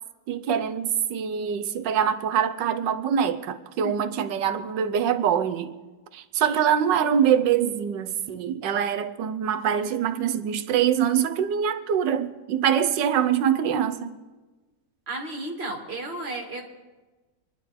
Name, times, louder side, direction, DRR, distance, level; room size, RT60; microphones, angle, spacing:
voice 1, 0.3-5.7 6.1-14.1, right 8 dB, 80° right, 1.5 m, -24 dB
voice 2, 15.1-16.6, right 2 dB, 35° right, 2.3 m, -33 dB
25.0 x 11.0 x 4.2 m
omnidirectional pair, 1.9 m